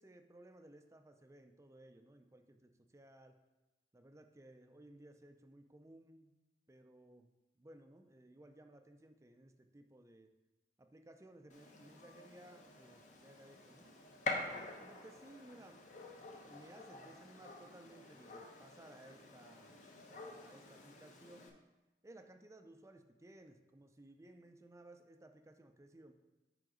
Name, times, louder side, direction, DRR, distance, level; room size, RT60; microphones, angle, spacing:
voice 1, 0.0-3.4 3.9-6.3 6.7-7.3 7.6-10.3 10.8-13.9 14.5-15.8 16.4-19.8 20.1-21.5 22.0-26.1, right 1 dB, 15° right, 6 dB, 0.5 m, -59 dB
Gunshot gunfire, 11.5-21.5, left 2 dB, 45° left, 0.8 m, -47 dB
7.6 x 5.1 x 3.8 m, 1.0 s
head